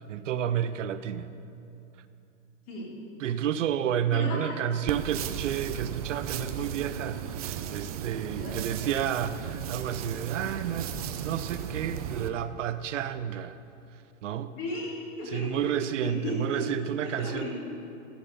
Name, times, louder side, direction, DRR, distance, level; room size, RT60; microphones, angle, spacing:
voice 1, 0.1-1.3 3.2-13.6 14.2-14.5 15.3-17.5, right 9 dB, 75° right, 12 dB, 0.6 m, -31 dB
voice 2, 4.1-4.6 8.3-8.6 14.5-15.5 16.0-16.7 17.0-17.5, left 1 dB, 35° left, -4 dB, 3.0 m, -35 dB
sound 1, 4.9-12.3, right 9 dB, 30° right, 0.4 m, -35 dB
14.0 x 7.1 x 5.4 m, 2.7 s
hypercardioid pair, 150°, 38 cm